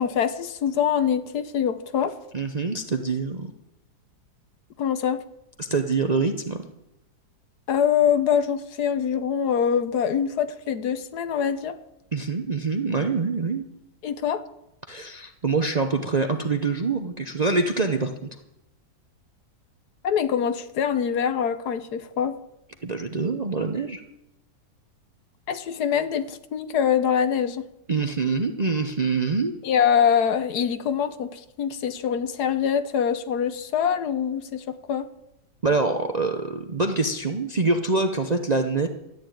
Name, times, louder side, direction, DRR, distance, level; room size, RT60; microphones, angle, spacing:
voice 1, 0.0-2.2 4.8-5.2 7.7-11.8 14.0-14.4 20.0-22.4 25.5-27.6 29.6-35.1, left 8 dB, 75° left, 12 dB, 1.4 m, -24 dB
voice 2, 2.3-3.5 5.6-6.7 12.1-13.6 14.9-18.3 22.8-24.0 27.9-29.5 35.6-38.9, right 3 dB, 40° right, 6 dB, 0.6 m, -25 dB
13.5 x 9.3 x 9.1 m, 0.90 s
omnidirectional pair, 1.8 m